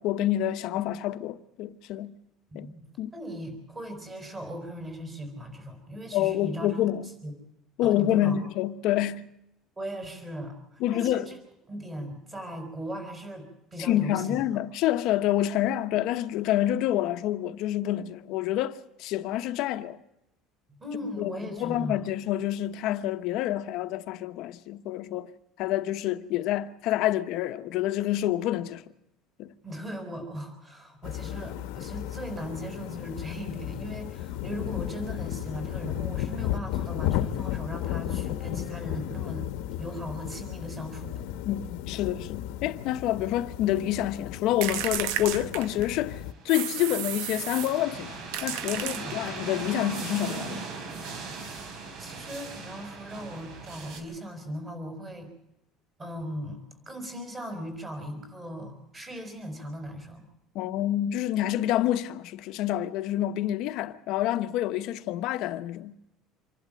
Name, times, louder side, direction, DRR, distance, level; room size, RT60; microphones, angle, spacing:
voice 1, 0.0-2.2 2.5-2.7 3.0-3.1 6.1-7.2 7.8-9.3 10.8-11.3 13.8-20.0 21.2-25.3 25.6-28.8 29.4-29.5 41.4-48.2 48.4-50.6 60.5-66.0, left 13 dB, 55° left, 1.0 m, -28 dB
voice 2, 2.5-6.8 7.2-7.3 7.8-8.4 9.8-11.3 11.7-14.6 20.8-22.0 29.6-39.5 39.8-41.2 48.7-49.2 52.0-55.3 56.0-56.6 56.8-60.3, equal, 20° right, 4.9 m, -38 dB
sound 1, 31.0-46.3, left 12 dB, 85° left, 1.2 m, -34 dB
sound 2, 44.6-46.0 46.5-47.8 48.3-49.4, right 11 dB, 80° right, 1.1 m, -33 dB
sound 3, 46.1-54.0, right 4 dB, 55° right, 4.6 m, -39 dB
26.0 x 12.0 x 9.0 m
cardioid pair, 170°, 0 cm